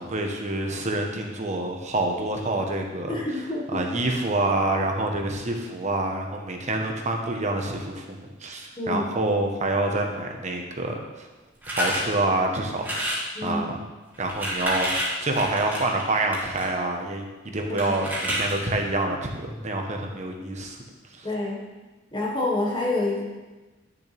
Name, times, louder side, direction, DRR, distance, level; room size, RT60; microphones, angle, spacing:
voice 1, 0.0-3.2 3.7-11.3 11.7-13.7 14.2-17.3 17.5-20.8 21.2-21.3, right 2 dB, 40° right, 2 dB, 1.1 m, -27 dB
voice 2, 3.1-3.8 8.8-9.1 13.3-13.6 21.2-21.6 22.1-23.2, left 2 dB, 25° left, -4 dB, 1.6 m, -27 dB
sound 1, 11.6-12.1 12.8-13.3 14.1-16.7 17.8-18.7, equal, 10° right, 2.4 m, -29 dB
11.0 x 6.9 x 3.5 m, 1.2 s
head